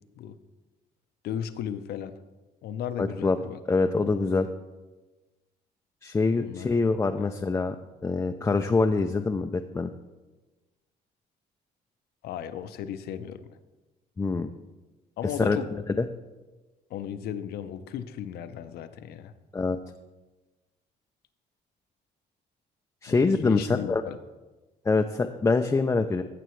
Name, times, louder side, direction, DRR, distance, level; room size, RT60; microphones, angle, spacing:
voice 1, 1.2-2.2 2.6-3.6 6.4-6.7 7.2-7.3 12.2-13.6 15.2-15.7 16.9-19.3 23.1-24.2, left 9 dB, 70° left, 11 dB, 0.7 m, -35 dB
voice 2, 3.0-3.4 3.7-4.5 6.0-9.9 14.2-14.5 15.2-15.6 16.0-16.1 19.5-19.8 23.0-24.0 24.9-26.2, left 3 dB, 15° left, 6 dB, 0.4 m, -25 dB
15.0 x 6.8 x 3.1 m, 1.2 s
cardioid pair, 110°, 17 cm